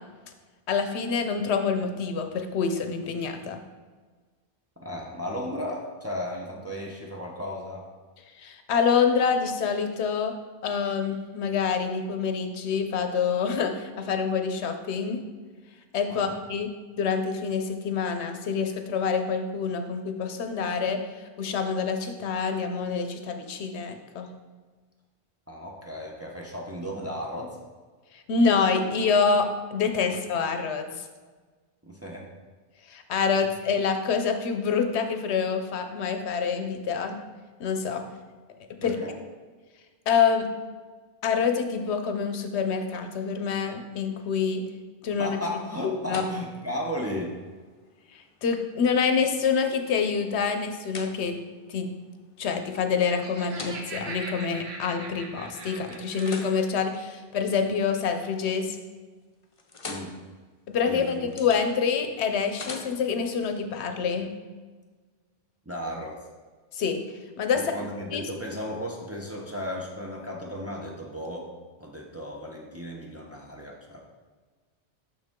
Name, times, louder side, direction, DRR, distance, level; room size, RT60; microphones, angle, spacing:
voice 1, 0.7-3.6 8.4-10.3 10.6-15.2 15.9-16.7 17.0-21.0 21.4-24.3 28.1-31.0 32.9-37.2 37.6-38.0 38.8-39.0 40.1-40.5 41.2-44.6 45.0-45.4 45.8-46.3 48.1-51.4 51.7-51.9 52.4-58.8 60.7-64.3 66.7-67.0 67.4-67.6 68.1-68.2, left 6 dB, 75° left, 7 dB, 0.9 m, -26 dB
voice 2, 4.8-7.9 16.1-16.3 25.5-27.6 31.8-32.3 38.8-39.1 45.2-47.4 59.9-60.1 60.9-61.3 65.7-66.3 67.5-71.5 71.8-74.0, equal, 15° right, -1 dB, 0.6 m, -35 dB
sound 1, 45.4-55.4 55.9-58.1 58.5-58.9 59.2-63.5, left 3 dB, 35° left, 0.7 m, -46 dB
Laughter, 52.8-56.7, right 3 dB, 70° right, 1.1 m, -41 dB
6.5 x 6.0 x 3.6 m, 1.4 s
omnidirectional pair, 1.1 m